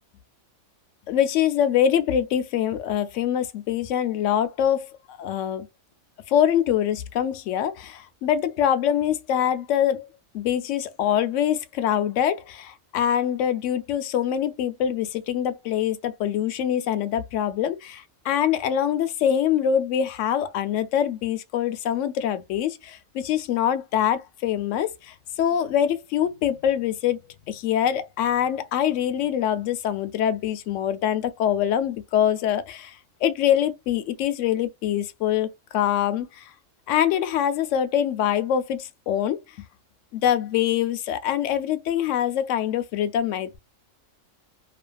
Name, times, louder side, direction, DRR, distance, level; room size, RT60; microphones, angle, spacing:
voice 1, 1.1-5.7 6.3-10.1 10.3-36.4 36.9-39.4 40.1-43.6, left 10 dB, 70° left, 0.9 m, -24 dB
2.7 x 2.5 x 2.2 m
omnidirectional pair, 1.4 m